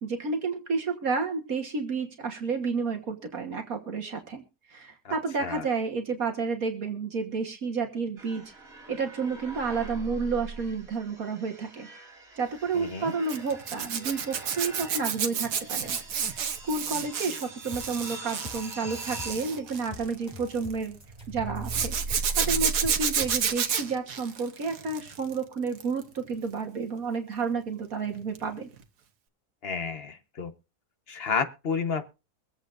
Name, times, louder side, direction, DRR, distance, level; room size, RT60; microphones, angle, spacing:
voice 1, 0.0-8.4 8.9-11.9 12.4-16.0 16.3-21.0 21.3-28.7, right 4 dB, 65° right, 4 dB, 1.8 m, -31 dB
sound 1, 8.2-23.6, right 3 dB, 40° right, 2.8 m, -41 dB
voice 2, 12.7-13.1 29.6-30.5 31.1-32.0, left 5 dB, 40° left, 9 dB, 1.3 m, -31 dB
Zipper (clothing), 13.3-20.7 21.6-25.3 25.7-26.0 28.3-28.5 28.8-28.9, right 7 dB, 90° right, 1.7 m, -30 dB
sound 2, 17.7-23.5, left 3 dB, 25° left, 6.3 m, -45 dB
23.5 x 8.2 x 2.6 m, 0.30 s
omnidirectional pair, 1.6 m